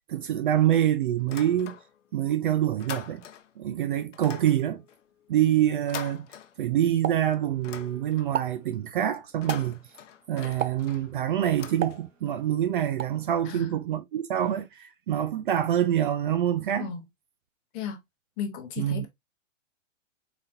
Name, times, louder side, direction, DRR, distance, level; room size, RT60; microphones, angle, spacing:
voice 1, 0.1-1.8 2.1-3.2 3.6-4.8 5.3-6.3 6.6-9.8 10.3-16.9 18.8-19.1, right 11 dB, 45° right, 0.4 m, -26 dB
sound 1, 1.2-2.2 2.5-3.6 4.1-7.0 7.3-8.5 9.2-12.4, left 8 dB, 70° left, 0.7 m, -44 dB
Explosion, 7.0-7.9 8.2-8.6 9.5-9.8 10.6-11.0 11.8-12.5 13.0-13.2, right 9 dB, 85° right, 0.7 m, -33 dB
voice 2, 18.4-19.1, left 7 dB, 25° left, 0.8 m, -34 dB
4.0 x 3.3 x 2.5 m
hypercardioid pair, 135°, 38 cm